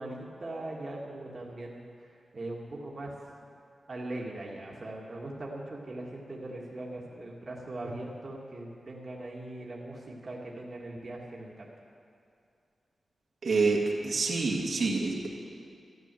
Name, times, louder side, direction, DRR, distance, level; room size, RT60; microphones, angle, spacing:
voice 1, 0.0-3.1 3.9-11.7, right 2 dB, 40° right, -3 dB, 1.8 m, -40 dB
voice 2, 13.4-15.3, right 3 dB, 65° right, -2 dB, 2.1 m, -27 dB
13.5 x 11.5 x 7.6 m, 2.4 s
wide cardioid pair, 125°, 0 cm